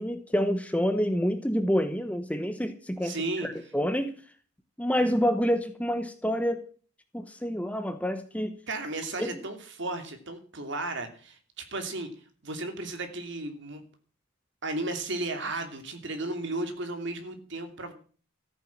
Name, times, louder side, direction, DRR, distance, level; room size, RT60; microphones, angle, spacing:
voice 1, 0.0-4.1 4.8-6.7 7.1-8.5 9.2-9.3, equal, 5° left, 9 dB, 1.0 m, -28 dB
voice 2, 3.0-3.5 8.7-12.1 12.4-13.8 14.6-17.9, right 2 dB, 55° right, 7 dB, 2.8 m, -34 dB
14.0 x 9.1 x 7.3 m, 0.41 s
head